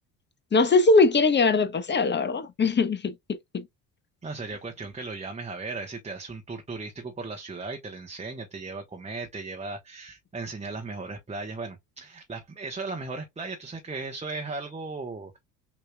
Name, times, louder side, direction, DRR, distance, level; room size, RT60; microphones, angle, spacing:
voice 1, 0.5-3.1 3.5-3.6, left 3 dB, 20° left, 1.0 m, -21 dB
voice 2, 4.2-15.4, right 3 dB, 15° right, 1.1 m, -36 dB
6.5 x 3.0 x 2.3 m
hypercardioid pair, 65°, 48 cm